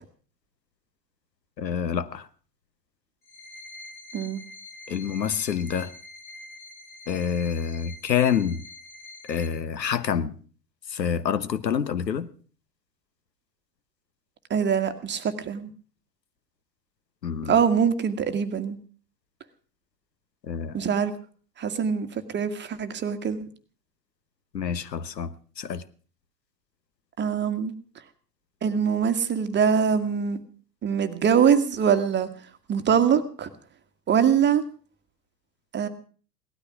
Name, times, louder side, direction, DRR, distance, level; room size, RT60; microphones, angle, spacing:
voice 1, 1.6-2.3 4.9-5.9 7.1-8.6 9.3-10.3 10.9-12.3 17.2-17.6 20.5-20.8 24.5-25.8, left 8 dB, 80° left, 1.3 m, -27 dB
sound 1, 3.2-9.5, left 2 dB, 30° left, 7.7 m, -45 dB
voice 2, 14.5-15.7 17.5-18.8 20.7-21.1 21.6-22.1 22.3-23.4 27.2-27.7 28.6-30.4 30.8-32.3 32.7-33.5 34.1-34.6 35.7-35.9, right 7 dB, 20° right, 1.7 m, -23 dB
18.0 x 13.0 x 6.0 m
figure-of-eight pair, 95°, 50 cm